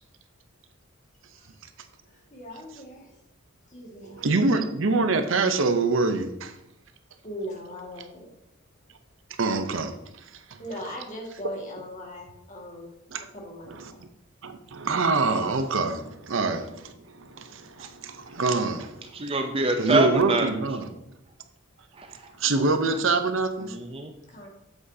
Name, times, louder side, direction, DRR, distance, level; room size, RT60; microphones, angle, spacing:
voice 1, 2.3-3.1 3.7-4.2 7.2-8.3 10.6-12.9 13.3-14.0 24.3-24.5, equal, 35° left, 1.9 m, -39 dB
voice 2, 4.0-6.5 9.4-10.0 13.1-13.3 13.7-13.9 14.4-19.1 19.8-20.8 22.4-23.8, right 3 dB, 65° right, 0.7 m, -25 dB
voice 3, 19.1-20.7 21.9-22.3 23.6-24.1, right 2 dB, 25° right, 0.5 m, -26 dB
8.1 x 7.9 x 2.8 m
head